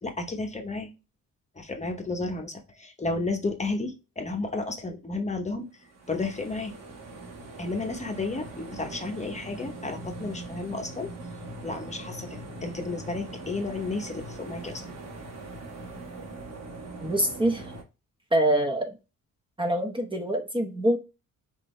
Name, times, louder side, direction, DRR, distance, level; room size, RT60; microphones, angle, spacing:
voice 1, 0.0-0.9 1.5-5.7 6.1-6.7 7.6-11.1 11.6-14.8, left 3 dB, 20° left, 3 dB, 0.9 m, -32 dB
sound 1, 5.8-17.8, right 2 dB, 50° right, 1.8 m, -41 dB
voice 2, 17.0-17.7 18.3-19.0 19.6-21.0, right 1 dB, 15° right, 4 dB, 0.9 m, -25 dB
6.0 x 2.7 x 3.2 m, 0.28 s
cardioid pair, 115°, 33 cm